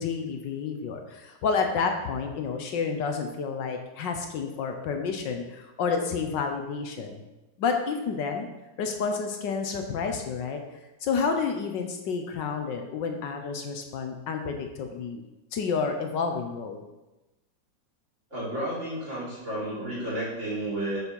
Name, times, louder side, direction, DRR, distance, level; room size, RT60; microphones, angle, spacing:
voice 1, 0.0-7.2 7.6-8.5 8.8-15.2 15.5-16.8, left 5 dB, 70° left, 4 dB, 1.5 m, -30 dB
voice 2, 18.3-21.0, right 1 dB, 35° right, -7 dB, 3.8 m, -32 dB
7.0 x 6.2 x 5.4 m, 1.0 s
omnidirectional pair, 2.1 m